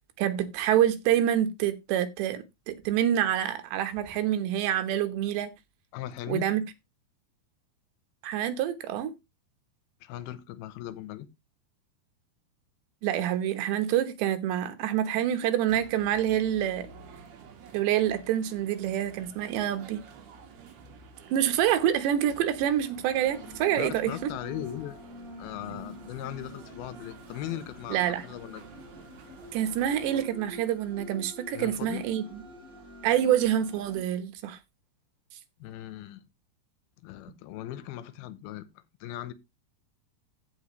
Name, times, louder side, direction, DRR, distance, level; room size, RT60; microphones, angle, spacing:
voice 1, 0.2-5.5 6.3-6.6 8.2-9.1 13.0-16.9 17.7-20.0 21.3-24.3 27.9-28.2 29.5-32.4 33.0-34.6, right 11 dB, 85° right, 3.4 m, -27 dB
voice 2, 5.9-6.5 10.0-11.3 23.8-25.0 25.4-28.6 31.5-32.0 35.6-36.2 37.0-38.7 39.0-39.3, left 13 dB, 75° left, 2.5 m, -38 dB
sound 1, 15.6-30.3, right 5 dB, 65° right, 3.9 m, -51 dB
sound 2, 23.2-34.0, left 1 dB, 20° right, 3.9 m, -46 dB
15.0 x 5.7 x 3.1 m
omnidirectional pair, 4.9 m